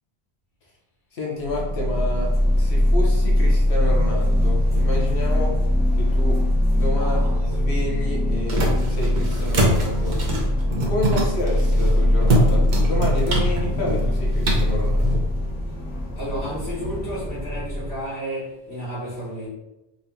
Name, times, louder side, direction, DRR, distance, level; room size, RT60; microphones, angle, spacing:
voice 1, 1.1-2.3 2.5-5.5 6.0-6.3 6.7-8.6 8.9-10.1 10.8-15.2, left 1 dB, 90° left, -2 dB, 1.2 m, -30 dB
sound 1, 1.4-18.0, left 1 dB, 10° left, 1.2 m, -21 dB
voice 2, 6.9-7.4 16.1-19.5, equal, 65° left, -9 dB, 1.7 m, -32 dB
sound 2, 7.3-15.2, right 1 dB, 50° right, 0.9 m, -25 dB
3.8 x 3.6 x 2.7 m, 0.95 s
omnidirectional pair, 1.1 m